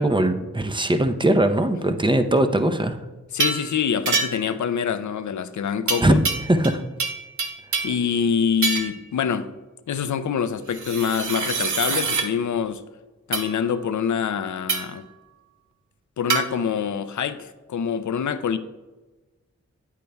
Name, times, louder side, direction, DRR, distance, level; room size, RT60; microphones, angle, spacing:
voice 1, 0.0-3.0 6.0-6.2 6.5-6.8, right 1 dB, 15° right, 0.6 m, -20 dB
voice 2, 3.3-6.2 7.8-9.5 9.9-12.8 13.3-15.0 16.2-18.6, left 7 dB, 75° left, 0.5 m, -25 dB
sound 1, 3.4-3.7 4.1-4.5 5.9-6.7 7.0-8.0 8.6-9.0 10.7-12.3 13.3-13.5 14.7-15.0 16.3-16.5, right 4 dB, 80° right, 0.7 m, -25 dB
9.0 x 8.4 x 2.3 m
cardioid pair, 45°, 30 cm